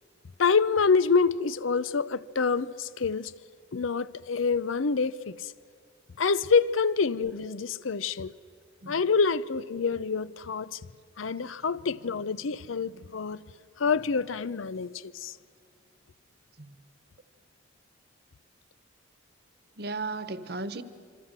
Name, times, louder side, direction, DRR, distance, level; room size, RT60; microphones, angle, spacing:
voice 1, 0.4-3.3 3.7-5.5 6.2-8.3 8.9-10.8 11.2-13.4 13.8-15.4, left 5 dB, 85° left, 0.7 m, -26 dB
voice 2, 19.8-20.8, right 3 dB, 50° right, 1.1 m, -35 dB
26.5 x 25.5 x 7.5 m
head